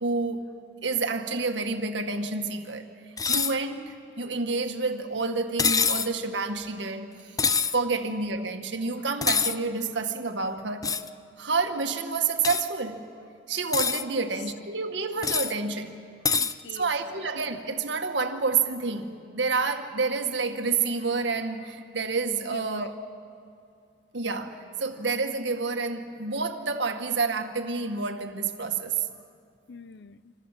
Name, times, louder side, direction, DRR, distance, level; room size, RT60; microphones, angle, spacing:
voice 1, 0.0-0.5 0.8-7.4 7.7-10.9 11.4-13.0 13.5-16.0 16.7-22.9 24.1-29.0, right 4 dB, 70° right, 5 dB, 1.8 m, -29 dB
sound 1, 3.2-3.6 5.6-6.1 7.4-7.8 9.2-9.6 10.8-11.1 12.4-12.6 13.5-14.0 15.2-15.5 16.2-16.5, left 5 dB, 20° left, 0.6 m, -25 dB
voice 2, 16.3-17.3 22.4-22.9 29.7-30.3, left 4 dB, 65° left, 15 dB, 0.6 m, -44 dB
26.5 x 26.5 x 7.5 m, 2.3 s
head